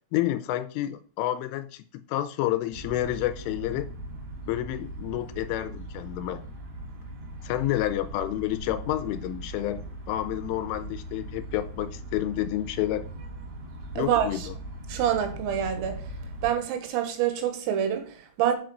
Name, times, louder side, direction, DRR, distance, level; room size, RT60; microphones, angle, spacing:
voice 1, 0.1-3.9 4.5-6.4 7.4-13.1 14.0-14.5, left 14 dB, 85° left, 3.1 m, -29 dB
sound 1, 2.7-16.5, right 1 dB, 60° right, 4.8 m, -39 dB
voice 2, 14.0-14.5 14.9-16.0 16.4-18.5, right 9 dB, 85° right, 4.3 m, -26 dB
9.0 x 5.6 x 6.4 m
omnidirectional pair, 5.9 m